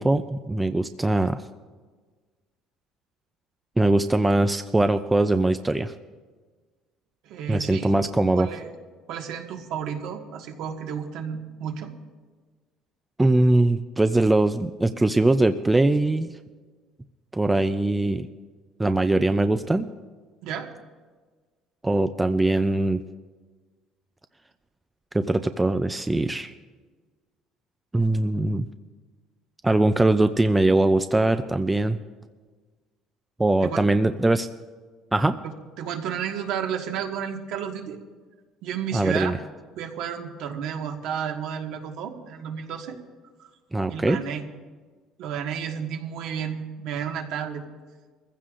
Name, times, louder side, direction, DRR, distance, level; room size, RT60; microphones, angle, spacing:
voice 1, 0.0-1.4 3.8-5.9 7.5-8.5 13.2-16.3 17.3-18.3 18.8-19.9 21.8-23.0 25.1-26.5 27.9-28.7 29.6-32.0 33.4-34.5 35.1-35.4 38.9-39.4 43.7-44.2, right 2 dB, 10° right, 9 dB, 0.3 m, -21 dB
voice 2, 7.2-7.9 8.3-8.7 9.1-11.9 20.4-20.7 33.6-33.9 35.8-38.0 38.6-39.3 39.8-43.0 43.4-43.5 43.9-44.4 45.2-47.6, right 8 dB, 60° right, 4 dB, 1.5 m, -32 dB
23.5 x 15.5 x 2.5 m, 1.4 s
cardioid pair, 175°, 0 cm